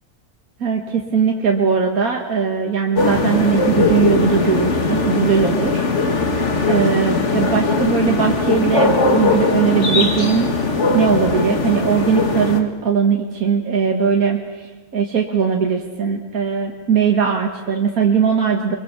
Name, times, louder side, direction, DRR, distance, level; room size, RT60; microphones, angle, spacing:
voice 1, 0.6-6.2 6.7-10.5 10.9-18.8, right 6 dB, 85° right, 2 dB, 2.0 m, -19 dB
sound 1, 3.0-12.6, left 3 dB, 55° left, 2.1 m, -19 dB
25.0 x 23.0 x 7.4 m, 1.3 s
omnidirectional pair, 1.5 m